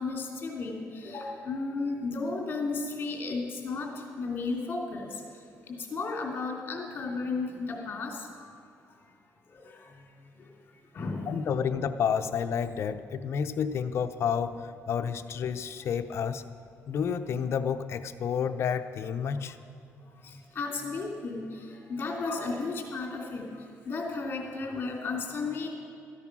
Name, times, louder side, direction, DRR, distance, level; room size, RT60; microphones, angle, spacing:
voice 1, 0.0-3.9 4.2-5.1 5.7-8.5 9.6-9.7 10.9-11.2 20.2-21.4 21.9-23.4 23.9-25.7, left 3 dB, 40° left, 1 dB, 2.9 m, -33 dB
voice 2, 11.3-16.4 16.9-19.6, left 7 dB, 55° left, 10 dB, 0.7 m, -30 dB
14.0 x 9.9 x 6.1 m, 2.5 s
cardioid pair, 115°, 5 cm